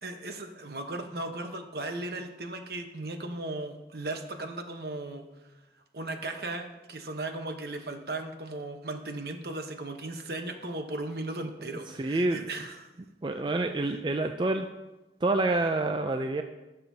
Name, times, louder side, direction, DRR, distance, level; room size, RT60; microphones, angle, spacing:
voice 1, 0.0-5.3 5.9-12.9 13.9-14.0, right 2 dB, 60° right, 5 dB, 1.0 m, -37 dB
voice 2, 12.0-12.4 13.2-14.7 15.2-16.4, right 2 dB, 25° right, 6 dB, 0.4 m, -27 dB
17.0 x 6.8 x 2.8 m, 1.1 s
head